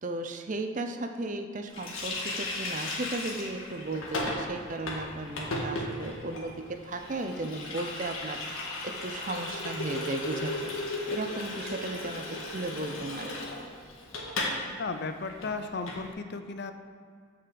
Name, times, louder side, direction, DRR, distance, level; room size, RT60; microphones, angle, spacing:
voice 1, 0.0-10.7 11.1-13.4, right 2 dB, 35° right, 6 dB, 0.6 m, -35 dB
Water tap faucet, 1.7-14.6 14.9-15.0 15.3-16.0, left 2 dB, 75° left, 1.7 m, -36 dB
voice 2, 14.8-16.7, left 4 dB, 50° left, 9 dB, 0.5 m, -35 dB
8.3 x 5.8 x 7.0 m, 2.2 s
head